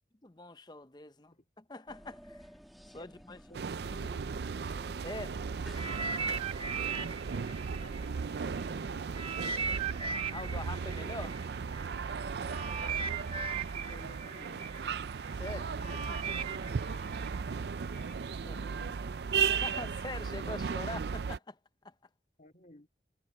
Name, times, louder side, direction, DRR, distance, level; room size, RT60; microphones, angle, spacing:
voice 1, 0.2-2.5 2.9-3.4 5.0-5.4 10.3-11.4 15.4-16.4 18.4-18.6 19.6-21.6 21.8-21.9, left 2 dB, 25° left, 0.7 m, -44 dB
sound 1, 1.9-6.0, equal, ahead, 2.5 m, -54 dB
voice 2, 2.9-4.2 6.7-9.7 12.6-13.4 13.8-14.9 18.4-19.5 22.4-22.9, left 1 dB, 45° left, 3.2 m, -56 dB
sound 2, 3.5-21.4, right 6 dB, 65° right, 0.4 m, -36 dB
sound 3, 5.7-8.7 9.1-18.1 18.8-19.0, right 5 dB, 30° right, 1.3 m, -38 dB
head